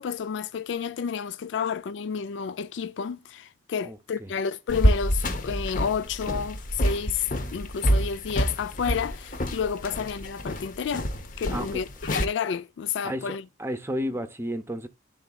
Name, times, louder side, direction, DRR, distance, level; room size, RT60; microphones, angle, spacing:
voice 1, 0.0-11.1 11.4-13.4, left 6 dB, 70° left, 0.3 m, -30 dB
voice 2, 3.8-4.3 11.5-11.8 13.0-14.9, equal, 15° right, 0.7 m, -32 dB
sound 1, 4.7-12.3, equal, 45° left, 0.9 m, -27 dB
11.5 x 3.9 x 2.3 m
head